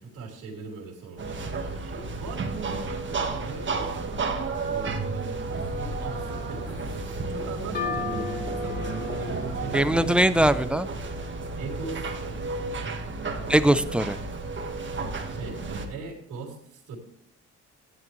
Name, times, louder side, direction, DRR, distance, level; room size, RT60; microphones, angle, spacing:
voice 1, 0.0-10.5 11.6-12.5 14.9-17.0, right 4 dB, 90° right, 0 dB, 3.0 m, -40 dB
sound 1, 1.2-15.9, right 3 dB, 40° right, 1.5 m, -32 dB
sound 2, 5.5-10.7, left 3 dB, 70° left, 3.2 m, -40 dB
sound 3, 7.7-11.3, left 5 dB, 35° left, 4.4 m, -37 dB
voice 2, 9.7-10.9 13.5-14.2, right 1 dB, 5° right, 12 dB, 0.6 m, -21 dB
12.0 x 10.5 x 3.2 m, 0.69 s
cardioid pair, 90°, 30 cm